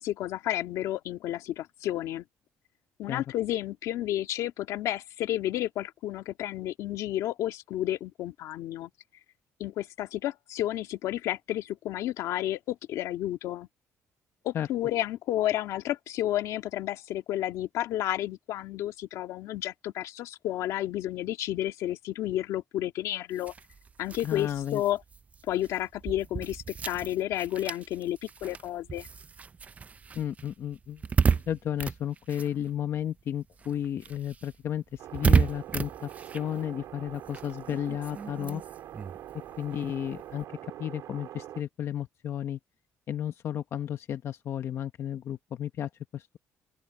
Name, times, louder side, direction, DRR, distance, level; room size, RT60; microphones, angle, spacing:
voice 1, 0.0-2.2 3.0-8.9 9.6-13.7 14.4-23.5 24.0-25.0 25.5-29.1, left 13 dB, 90° left, 1.8 m, -31 dB
sound 1, 23.3-33.2 33.5-40.4, right 5 dB, 25° right, 0.4 m, -32 dB
voice 2, 24.2-24.8 30.1-31.0 31.3-38.6 39.6-40.5 40.8-42.6 43.1-46.4, left 10 dB, 55° left, 1.0 m, -33 dB
sound 2, 35.0-41.6, right 12 dB, 80° right, 3.3 m, -44 dB
open air
cardioid pair, 130°, 5 cm